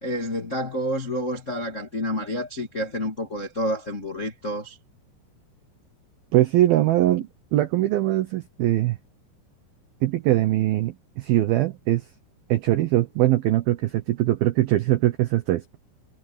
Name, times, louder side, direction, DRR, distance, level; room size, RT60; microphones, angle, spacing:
voice 1, 0.0-4.8, equal, 45° left, 0.9 m, -29 dB
voice 2, 6.3-9.0 10.0-12.0 12.5-15.8, right 15 dB, 80° right, 2.1 m, -22 dB
omnidirectional pair, 5.7 m